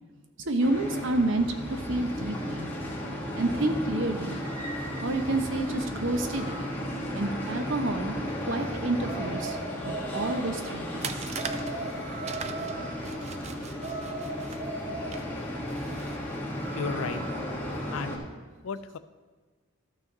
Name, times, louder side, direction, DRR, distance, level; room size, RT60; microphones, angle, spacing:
voice 1, 0.4-2.7 3.3-4.4 5.0-6.7 7.1-8.1 8.5-9.6 9.9-11.3, right 2 dB, 60° right, 7 dB, 0.8 m, -29 dB
sound 1, 0.6-18.2, equal, 10° left, 1.3 m, -35 dB
sound 2, 9.1-10.8 11.4-13.3 13.8-15.7, right 2 dB, 10° right, 2.6 m, -38 dB
sound 3, 11.0-16.2, right 6 dB, 30° right, 0.4 m, -41 dB
voice 2, 16.8-17.2 17.9-18.2 18.6-19.0, left 5 dB, 80° left, 13 dB, 0.4 m, -33 dB
13.0 x 6.0 x 4.0 m, 1.4 s
head